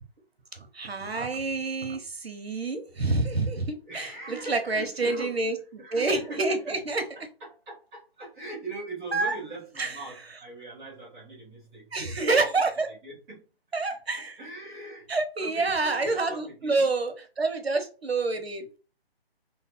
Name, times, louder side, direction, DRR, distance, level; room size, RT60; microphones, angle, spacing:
voice 1, 0.5-5.6 5.9-7.0 9.1-9.3 9.8-9.9 11.9-12.9 13.7-14.4 15.1-18.8, right 3 dB, 75° right, 6 dB, 1.0 m, -28 dB
voice 2, 3.8-6.8 7.4-13.5 14.2-15.1 15.4-16.9 18.3-18.4, right 2 dB, 5° right, -9 dB, 0.6 m, -41 dB
3.2 x 2.1 x 4.1 m, 0.35 s
figure-of-eight pair, 145°, 31 cm